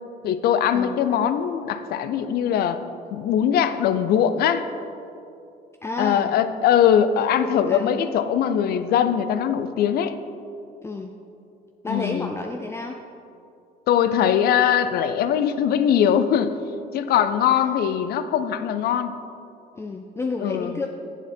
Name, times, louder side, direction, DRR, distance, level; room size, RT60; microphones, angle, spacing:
voice 1, 0.2-2.8 3.1-4.7 6.0-10.2 11.9-12.4 13.9-16.6 16.9-19.2 20.4-20.8, left 9 dB, 65° left, 11 dB, 0.5 m, -21 dB
voice 2, 5.8-6.3 7.7-8.0 10.8-11.1 11.8-13.0 17.1-17.2 17.5-17.7 19.7-20.9, left 3 dB, 15° left, 3 dB, 0.4 m, -30 dB
8.1 x 7.0 x 4.3 m, 2.6 s
cardioid pair, 110°, 17 cm